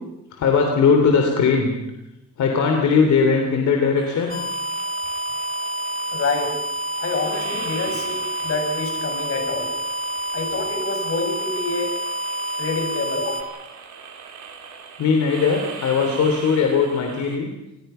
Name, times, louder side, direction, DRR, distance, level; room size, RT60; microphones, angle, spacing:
voice 1, 0.3-1.7 2.4-4.4 7.0-7.1 7.4-7.5 15.0-17.5, left 5 dB, 70° left, 2 dB, 3.4 m, -19 dB
sound 1, 4.0-17.4, right 6 dB, 75° right, 4.5 m, -40 dB
sound 2, 4.3-13.4, right 1 dB, 30° left, 2.1 m, -28 dB
voice 2, 6.1-6.6 7.0-9.7 10.3-11.9 12.6-13.6, left 3 dB, 50° left, 4 dB, 6.2 m, -27 dB
28.0 x 20.0 x 5.7 m, 0.91 s
cardioid pair, 130°, 30 cm